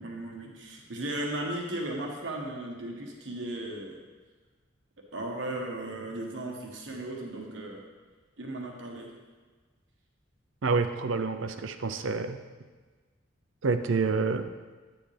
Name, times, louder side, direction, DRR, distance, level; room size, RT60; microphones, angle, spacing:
voice 1, 0.0-3.9 5.1-7.8 8.4-9.1, right 1 dB, 70° right, -1 dB, 1.4 m, -36 dB
voice 2, 10.6-12.4 13.6-14.7, right 4 dB, 85° right, 9 dB, 0.6 m, -28 dB
9.5 x 8.8 x 3.4 m, 1.4 s
head